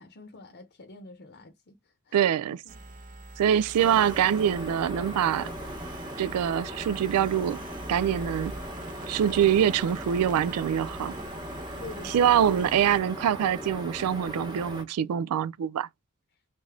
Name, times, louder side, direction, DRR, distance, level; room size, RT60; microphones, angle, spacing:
voice 1, 0.0-3.1 11.8-12.4, left 3 dB, 50° left, 0.8 m, -47 dB
voice 2, 2.1-2.6 3.4-5.5 6.2-7.6 7.9-8.5 9.1-11.1 12.1-15.9, right 9 dB, 85° right, 0.3 m, -24 dB
sound 1, 2.7-13.0, right 2 dB, 35° right, 0.6 m, -44 dB
sound 2, 3.8-14.8, equal, 20° right, 1.0 m, -38 dB
3.3 x 2.5 x 3.6 m
head